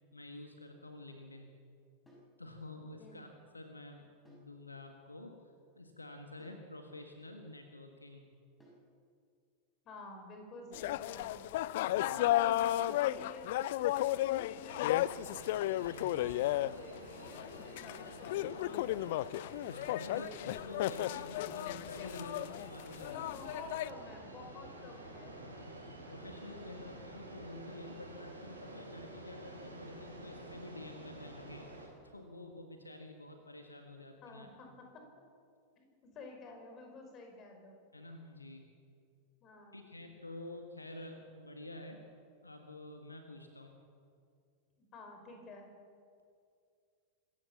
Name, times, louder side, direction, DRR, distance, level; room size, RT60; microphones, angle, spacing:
voice 1, 0.1-1.5 2.4-3.3 3.5-5.4 5.8-8.3 12.0-12.2 15.8-16.3 19.7-23.3 25.4-25.8 26.1-34.5 37.9-38.7 39.7-42.1 42.4-43.7, left 2 dB, 80° left, 4 dB, 1.7 m, -49 dB
sound 1, 2.1-2.4 4.3-4.6 6.4-6.7 8.6-8.9 10.7-11.0 12.9-13.2 15.0-15.4 17.2-17.5, right 1 dB, 10° left, 6.7 m, -61 dB
voice 2, 9.9-11.5 11.8-13.5 13.8-15.4 16.1-19.3 23.0-25.4 26.7-26.9 34.2-35.0 35.8-37.8 39.4-39.9 44.8-45.7, left 3 dB, 30° left, 3 dB, 5.3 m, -51 dB
sound 2, 10.7-23.9, left 14 dB, 55° left, 0.4 m, -34 dB
sound 3, 14.7-31.9, right 2 dB, 80° right, 4.9 m, -50 dB
25.5 x 14.5 x 7.3 m, 2.3 s
figure-of-eight pair, 90°, 0 cm